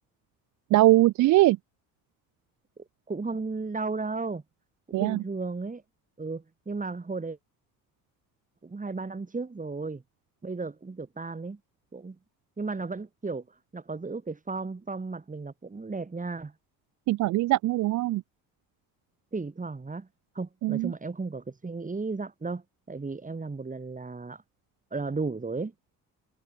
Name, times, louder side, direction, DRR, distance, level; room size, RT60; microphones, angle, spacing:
voice 1, 0.7-1.6 4.9-5.2 17.1-18.2 20.6-20.9, right 17 dB, 55° right, 0.4 m, -21 dB
voice 2, 2.8-4.4 5.0-5.8 6.2-7.4 8.6-10.0 10.4-11.6 11.9-12.2 12.6-16.5 19.3-20.1 20.3-22.6 22.9-24.4 24.9-25.7, right 3 dB, 20° right, 4.1 m, -34 dB
supercardioid pair, 85°, 37 cm